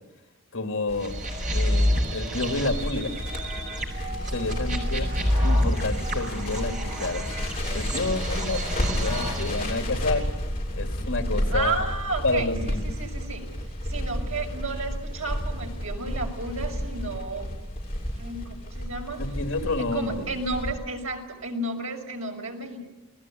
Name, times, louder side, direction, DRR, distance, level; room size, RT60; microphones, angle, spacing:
voice 1, 0.5-1.1 1.5-3.1 4.3-5.1 5.4-7.2 7.7-10.3 10.7-11.8 12.2-12.9 19.2-20.3, left 2 dB, 75° left, 6 dB, 3.0 m, -29 dB
Crackle, 0.9-20.7, equal, 30° left, 7.2 m, -31 dB
sound 1, 1.0-9.8, equal, 35° right, 5.9 m, -28 dB
voice 2, 11.5-13.5 13.9-17.5 18.2-19.2 19.8-22.8, right 3 dB, 80° right, 2 dB, 6.3 m, -32 dB
29.5 x 20.5 x 9.5 m, 0.98 s
head